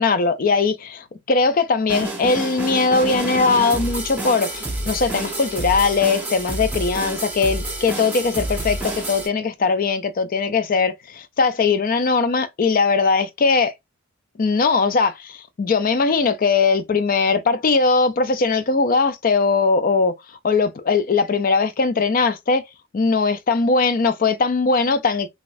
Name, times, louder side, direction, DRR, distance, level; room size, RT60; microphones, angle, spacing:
voice 1, 0.0-10.9 11.4-13.7 14.4-22.6 22.9-25.3, left 4 dB, 40° left, 0.4 m, -20 dB
sound 1, 1.9-9.3, right 2 dB, 10° right, 0.9 m, -28 dB
4.0 x 2.4 x 2.5 m
head